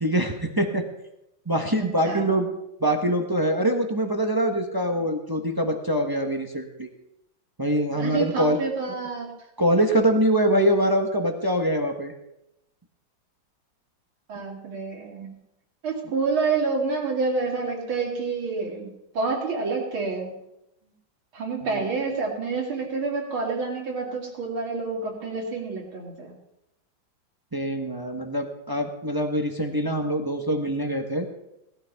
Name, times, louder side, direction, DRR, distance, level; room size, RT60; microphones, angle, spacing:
voice 1, 0.0-0.8 1.5-2.5 2.8-6.9 7.6-8.6 9.6-12.1 21.7-21.8 27.5-31.3, right 1 dB, 25° right, 3 dB, 0.5 m, -24 dB
voice 2, 1.8-2.5 8.0-9.3 14.3-15.4 15.8-20.4 21.3-26.3, right 4 dB, 80° right, 0 dB, 3.3 m, -28 dB
18.5 x 12.5 x 3.5 m, 0.87 s
omnidirectional pair, 2.2 m